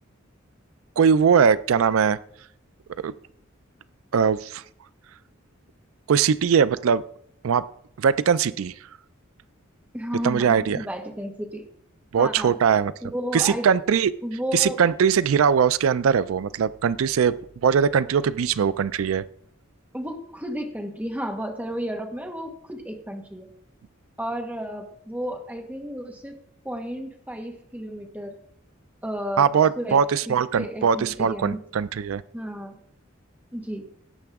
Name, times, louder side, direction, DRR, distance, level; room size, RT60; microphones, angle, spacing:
voice 1, 1.0-2.2 3.0-3.1 4.1-4.6 6.1-7.0 7.4-7.6 8.0-8.7 10.2-10.8 12.1-12.9 13.3-14.1 14.5-17.4 17.6-19.2 29.4-32.2, right 7 dB, 90° right, 17 dB, 0.4 m, -21 dB
voice 2, 9.9-11.7 12.2-12.6 13.0-13.7 14.2-14.8 19.9-23.5 24.2-26.4 26.6-28.4 29.0-29.5 29.8-31.6 32.3-32.8 33.5-33.9, equal, 10° right, 3 dB, 1.4 m, -32 dB
17.5 x 7.8 x 3.6 m, 0.69 s
head